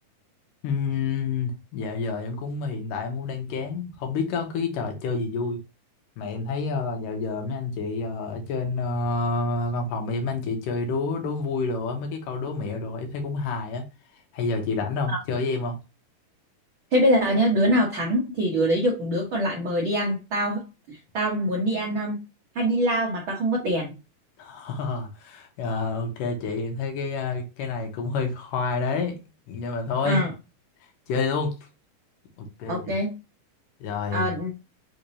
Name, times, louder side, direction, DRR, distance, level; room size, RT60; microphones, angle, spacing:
voice 1, 0.6-5.6 6.2-13.8 14.3-15.8 24.4-29.2 29.5-30.2 31.1-31.5 32.4-33.0 33.8-34.4, left 4 dB, 80° left, 2.7 m, -28 dB
voice 2, 16.9-22.2 22.5-23.9 30.0-30.3 32.7-33.1 34.1-34.5, equal, 70° right, 1.2 m, -24 dB
5.7 x 3.3 x 2.7 m
omnidirectional pair, 3.9 m